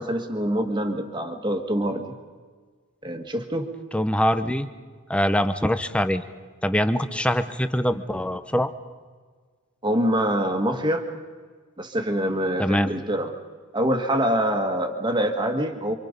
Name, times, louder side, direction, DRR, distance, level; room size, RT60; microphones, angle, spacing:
voice 1, 0.0-2.1 3.0-3.7 9.8-11.1 11.8-13.3 13.7-16.0, equal, 20° right, 5 dB, 1.8 m, -25 dB
voice 2, 3.9-4.7 5.1-6.2 6.6-8.7 12.6-12.9, equal, 5° left, 10 dB, 0.8 m, -23 dB
28.5 x 25.5 x 5.3 m, 1.5 s
head